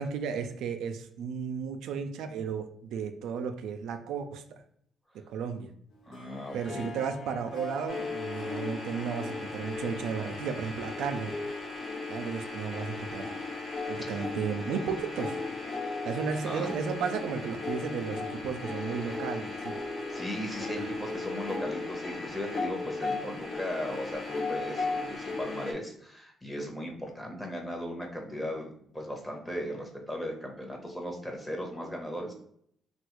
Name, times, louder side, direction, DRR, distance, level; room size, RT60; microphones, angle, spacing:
voice 1, 0.0-4.6 5.1-5.7 6.5-11.3 12.1-13.3 13.9-15.4 16.0-19.8 20.8-20.9, right 6 dB, 85° right, 0.3 m, -34 dB
Harp, 5.9-11.1, left 1 dB, 85° left, 0.8 m, -45 dB
voice 2, 6.0-6.9 14.1-14.2 16.4-16.7 20.1-32.3, equal, 10° left, 0.8 m, -37 dB
sound 1, 7.9-25.7, left 3 dB, 50° left, 1.1 m, -36 dB
3.3 x 2.3 x 3.0 m
cardioid pair, 90°, 0 cm